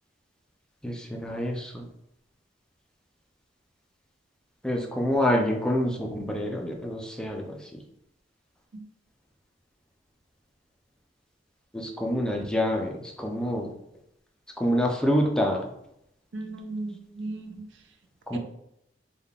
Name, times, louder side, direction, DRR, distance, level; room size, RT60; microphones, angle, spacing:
voice 1, 0.8-1.9 4.6-7.8 11.7-13.7 14.6-15.6 18.3-18.4, equal, 5° left, 1 dB, 0.4 m, -27 dB
voice 2, 16.3-17.6 18.3-18.4, right 2 dB, 75° right, 5 dB, 0.5 m, -36 dB
3.7 x 2.3 x 3.5 m, 0.78 s
head